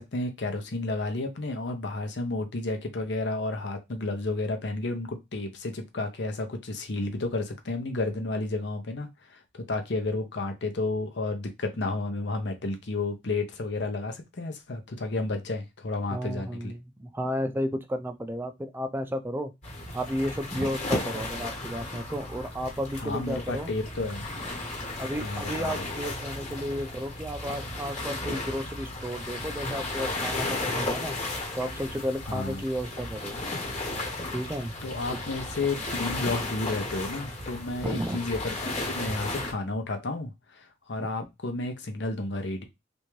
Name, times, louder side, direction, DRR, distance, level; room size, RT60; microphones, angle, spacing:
voice 1, 0.0-16.7 23.0-24.3 25.2-26.1 32.3-32.6 34.8-42.6, left 2 dB, 65° left, 0.7 m, -32 dB
voice 2, 16.1-19.5 19.9-23.7 25.0-31.2 31.5-33.4 34.3-34.7 37.8-38.2 41.0-41.1, equal, 10° right, 0.4 m, -33 dB
sound 1, 19.6-39.5, left 2 dB, 35° left, 1.3 m, -34 dB
3.3 x 2.6 x 3.1 m
head